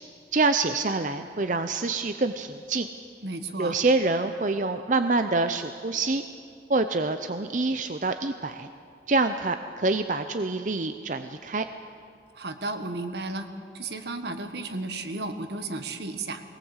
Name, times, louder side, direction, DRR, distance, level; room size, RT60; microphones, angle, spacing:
voice 1, 0.3-2.9 3.6-6.2 6.7-8.7 9.1-11.6, right 3 dB, 45° right, 8 dB, 0.6 m, -26 dB
voice 2, 3.2-3.7 12.3-13.5 13.7-16.4, right 2 dB, 70° right, 8 dB, 1.5 m, -33 dB
22.0 x 19.0 x 8.1 m, 2.4 s
head